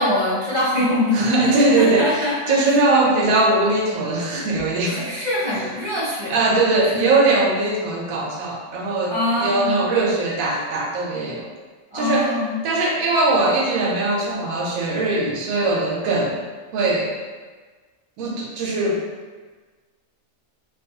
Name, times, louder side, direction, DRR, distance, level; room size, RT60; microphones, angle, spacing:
voice 1, 0.0-1.4 1.7-2.4 2.6-2.8 4.9-6.6 6.9-7.0 9.1-9.7 11.9-12.6, left 1 dB, 30° right, -8 dB, 0.5 m, -23 dB
voice 2, 1.1-5.0 6.3-9.1 9.4-11.5 11.9-12.3 12.6-16.4 16.7-17.1 18.2-19.0, right 2 dB, 80° right, -2 dB, 1.0 m, -20 dB
2.6 x 2.3 x 2.7 m, 1.4 s
omnidirectional pair, 1.4 m